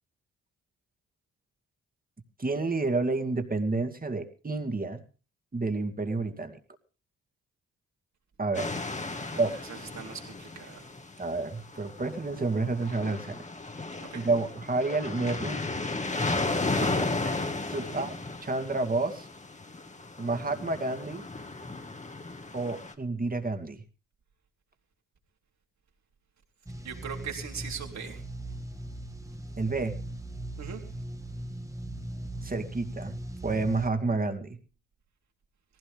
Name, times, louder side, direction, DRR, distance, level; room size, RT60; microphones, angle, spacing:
voice 1, 2.4-5.0 5.5-6.6 8.4-8.8 9.4-9.6 11.2-13.4 14.1-15.6 16.7-18.1 18.4-19.3 20.2-21.2 22.5-23.8 29.6-30.0 32.4-33.1 33.4-34.6, right 3 dB, 30° right, 6 dB, 2.4 m, -30 dB
sound 1, 8.5-11.1 11.7-22.9, left 3 dB, 25° left, 1.8 m, -34 dB
voice 2, 9.1-10.9 14.0-14.2 17.8-18.1 26.8-28.2 30.6-30.8, right 7 dB, 65° right, 2 dB, 3.7 m, -41 dB
sound 2, 26.7-33.9, right 1 dB, 10° right, 1.6 m, -39 dB
19.0 x 16.0 x 3.6 m, 0.36 s
cardioid pair, 75°, 30 cm